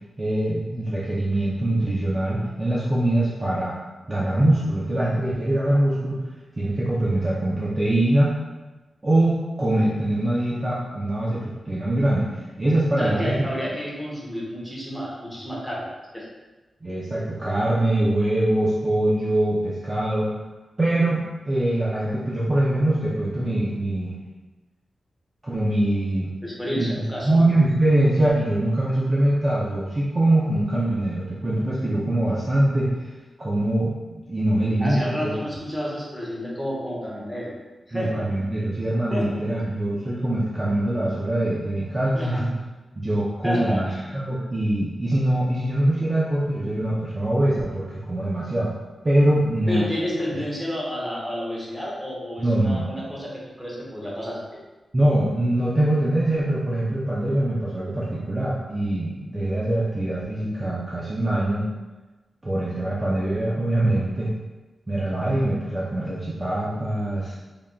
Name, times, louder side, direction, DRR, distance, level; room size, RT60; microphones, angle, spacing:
voice 1, 0.2-3.7 4.1-6.2 6.6-8.4 9.0-13.4 16.8-20.4 20.8-24.2 25.4-26.3 26.8-26.9 27.2-33.1 33.4-35.3 37.9-42.5 43.0-48.7 49.0-49.9 52.4-52.9 54.9-61.6 62.4-64.3 64.9-67.3, right 1 dB, 25° right, -7 dB, 0.5 m, -23 dB
voice 2, 13.0-15.9 16.1-16.3 26.4-27.4 34.8-37.5 37.9-38.2 39.1-39.3 42.1-42.4 43.4-44.1 49.7-54.6, equal, 5° right, -5 dB, 0.9 m, -30 dB
3.7 x 3.3 x 2.3 m, 1.2 s
wide cardioid pair, 160°, 0 cm